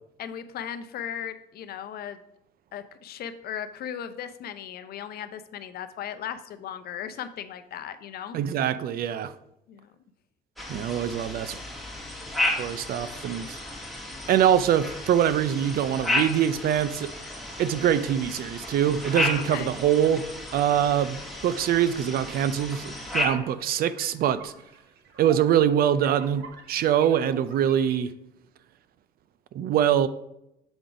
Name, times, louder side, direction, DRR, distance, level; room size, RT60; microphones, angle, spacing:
voice 1, 0.2-2.2 2.7-8.4 9.7-9.9 19.4-19.7, left 9 dB, 60° left, 11 dB, 0.6 m, -37 dB
voice 2, 8.3-9.3 10.7-11.6 12.6-13.6 14.3-17.1 17.6-20.2 20.5-21.2 21.4-24.5 25.2-28.1 29.5-30.1, right 10 dB, 55° right, 14 dB, 0.5 m, -24 dB
sound 1, 10.6-23.3, left 2 dB, ahead, 1.8 m, -33 dB
sound 2, 22.1-28.1, right 4 dB, 75° right, 1.3 m, -47 dB
7.0 x 3.8 x 4.9 m, 0.83 s
cardioid pair, 90°, 18 cm